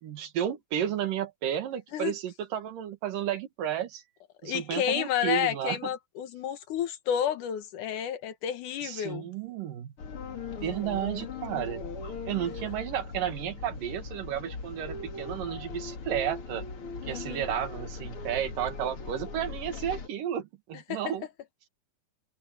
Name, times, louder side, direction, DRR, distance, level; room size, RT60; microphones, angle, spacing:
voice 1, 0.0-4.0 4.4-5.8 8.8-9.9 10.6-11.8 12.3-16.6 17.0-21.3, right 10 dB, 85° right, 3.5 m, -32 dB
voice 2, 4.4-9.3 17.0-17.6 20.9-21.0, left 10 dB, 75° left, 2.7 m, -31 dB
sound 1, 10.0-20.1, left 4 dB, 45° left, 2.9 m, -39 dB
omnidirectional pair, 3.7 m